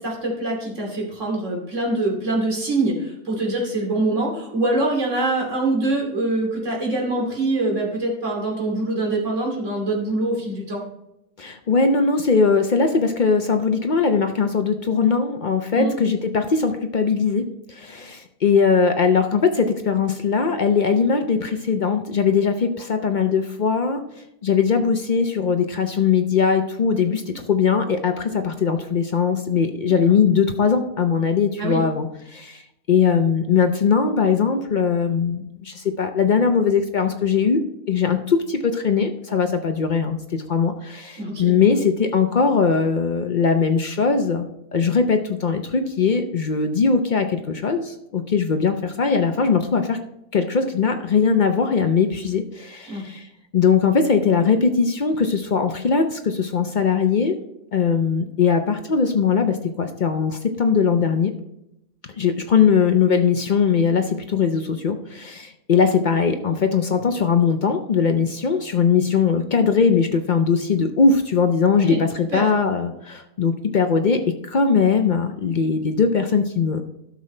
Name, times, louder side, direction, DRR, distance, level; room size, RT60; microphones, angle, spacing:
voice 1, 0.0-10.8 15.7-16.0 29.9-30.0 31.6-31.8 41.2-41.5 52.9-53.1 71.7-72.0 72.3-72.5, right 2 dB, 45° right, -1 dB, 3.0 m, -24 dB
voice 2, 11.4-24.0 24.4-32.6 32.9-37.6 37.9-50.0 50.3-53.3 53.5-57.4 57.7-61.3 62.1-76.8, left 5 dB, 70° left, 6 dB, 0.4 m, -20 dB
12.0 x 6.2 x 4.3 m, 0.84 s
omnidirectional pair, 1.7 m